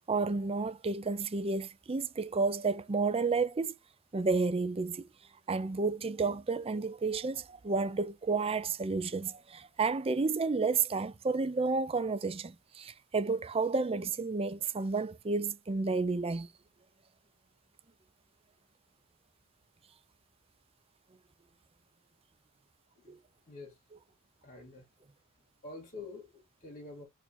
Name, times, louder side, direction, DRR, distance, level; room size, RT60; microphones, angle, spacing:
voice 1, 0.1-3.7 4.1-5.0 5.5-16.5 23.1-23.2, right 4 dB, 25° right, 0.4 m, -31 dB
voice 2, 23.5-23.8 24.4-24.9 25.6-27.0, left 3 dB, 40° left, 1.8 m, -47 dB
4.4 x 2.6 x 4.2 m
head